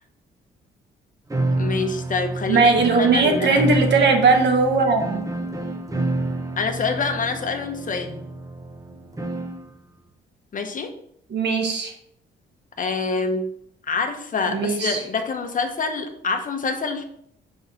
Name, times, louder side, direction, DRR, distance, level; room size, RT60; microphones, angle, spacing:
sound 1, 1.3-9.7, right 2 dB, 15° right, 1.1 m, -28 dB
voice 1, 1.6-2.7 3.0-3.6 6.6-8.2 10.5-10.9 12.8-13.5 13.9-17.0, left 4 dB, 40° left, 6 dB, 1.0 m, -26 dB
voice 2, 2.5-5.2 11.3-11.9 14.5-15.0, right 4 dB, 60° right, 3 dB, 1.4 m, -19 dB
5.6 x 3.8 x 5.7 m, 0.70 s
cardioid pair, 90°, 20 cm